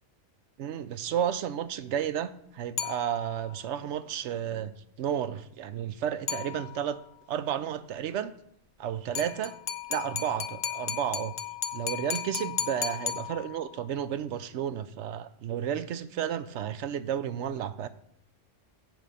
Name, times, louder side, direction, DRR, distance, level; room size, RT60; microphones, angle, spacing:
voice 1, 0.6-7.0 7.3-8.3 8.8-9.6 9.9-11.3 11.7-17.9, right 9 dB, 80° right, 13 dB, 0.9 m, -32 dB
sound 1, 2.8-3.6 6.3-7.0 9.2-13.8, left 9 dB, 65° left, 0.9 m, -35 dB
7.3 x 5.1 x 6.9 m, 0.72 s
omnidirectional pair, 1.2 m